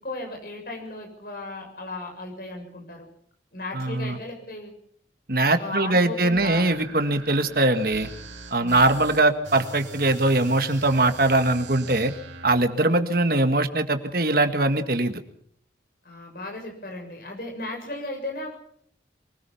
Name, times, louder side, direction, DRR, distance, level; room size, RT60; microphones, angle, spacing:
voice 1, 0.0-3.1 3.5-4.7 5.6-6.7 8.6-9.1 16.0-18.5, left 2 dB, 50° left, 2 dB, 6.9 m, -36 dB
voice 2, 3.7-4.2 5.3-8.1 8.5-12.1 12.4-15.2, right 2 dB, 50° right, 8 dB, 1.9 m, -21 dB
sound 1, 6.3-12.5, right 3 dB, 85° right, 2.7 m, -42 dB
24.0 x 19.0 x 5.8 m, 0.64 s
head